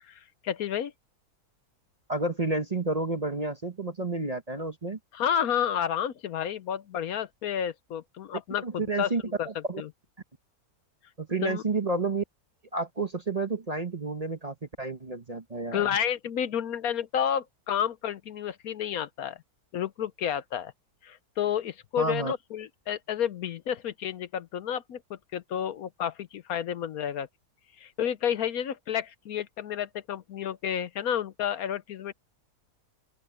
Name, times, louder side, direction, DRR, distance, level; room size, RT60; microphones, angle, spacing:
voice 1, 0.1-0.9 5.1-9.1 9.4-9.5 9.8-9.9 11.4-11.6 15.7-19.4 19.7-20.7 21.0-27.3 27.8-32.1, left 9 dB, 65° left, 1.1 m, -30 dB
voice 2, 2.1-5.0 8.6-9.8 11.2-12.2 12.7-15.9 22.0-22.3, right 3 dB, 30° right, 1.0 m, -30 dB
open air
omnidirectional pair, 1.7 m